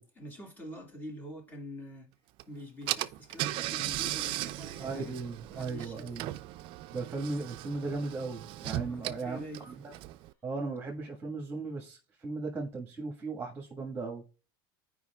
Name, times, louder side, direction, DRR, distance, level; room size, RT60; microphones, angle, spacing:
voice 1, 0.2-2.1 2.5-5.2 5.5-6.1 8.9-9.7, equal, 15° left, 2.0 m, -45 dB
Car / Engine, 2.4-2.5 2.9-10.3, right 15 dB, 50° right, 0.4 m, -37 dB
voice 2, 4.8-6.2 6.9-9.7 10.4-12.0 12.2-14.2, right 3 dB, 15° right, 1.5 m, -37 dB
14.0 x 5.0 x 2.3 m
supercardioid pair, 130°, 12 cm